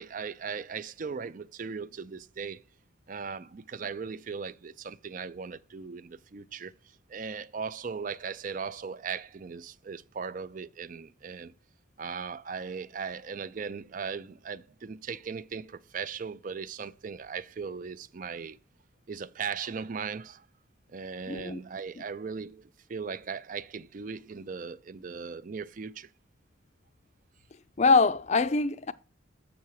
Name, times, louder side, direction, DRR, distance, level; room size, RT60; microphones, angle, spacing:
voice 1, 0.0-2.6 3.1-11.5 12.0-18.6 19.1-20.5 20.9-26.1, right 5 dB, 40° right, 0.4 m, -38 dB
voice 2, 21.3-21.6 27.8-28.9, left 4 dB, 35° left, 0.4 m, -23 dB
7.4 x 7.0 x 4.7 m
head